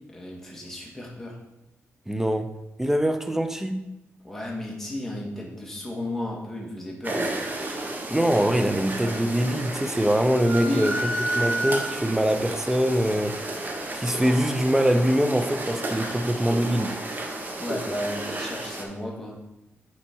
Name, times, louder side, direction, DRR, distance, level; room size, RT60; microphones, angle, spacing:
voice 1, 0.1-1.4 4.2-7.8 10.6-10.9 17.5-19.4, left 1 dB, 5° left, 2.1 m, -33 dB
voice 2, 2.1-2.5 2.8-3.8 8.0-13.4 13.9-17.0, equal, 10° right, 0.7 m, -23 dB
sound 1, 7.0-18.8, right 2 dB, 40° right, 1.3 m, -33 dB
sound 2, 10.4-12.3, right 1 dB, 60° right, 1.3 m, -28 dB
8.9 x 4.4 x 4.5 m
cardioid pair, 85°, 5 cm